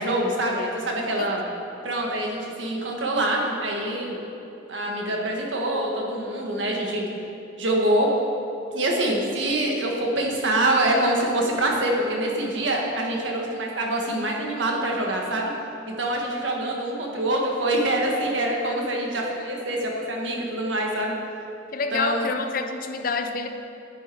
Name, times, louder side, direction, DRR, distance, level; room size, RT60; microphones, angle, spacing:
voice 1, 0.0-1.5 1.8-4.2 4.7-7.0 7.6-8.1 8.7-15.5 16.0-21.1 21.9-22.3, right 1 dB, 75° right, -1 dB, 1.7 m, -25 dB
voice 2, 21.7-23.5, left 4 dB, 50° left, 6 dB, 0.7 m, -27 dB
10.5 x 9.4 x 4.6 m, 3.0 s
head